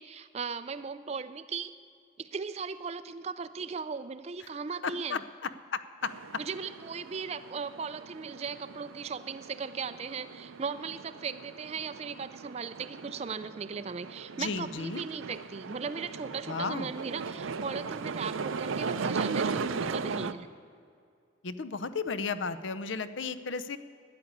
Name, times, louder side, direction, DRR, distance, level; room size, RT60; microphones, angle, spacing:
voice 1, 0.0-1.7 2.2-5.2 6.4-20.5, right 5 dB, 30° right, 12 dB, 0.3 m, -37 dB
voice 2, 4.8-5.2 5.7-6.1 14.4-15.0 16.5-16.9 21.4-23.8, left 4 dB, 70° left, 13 dB, 0.6 m, -34 dB
sound 1, 6.0-20.3, right 5 dB, 80° right, 0.6 m, -38 dB
13.0 x 9.7 x 9.6 m, 2.2 s
head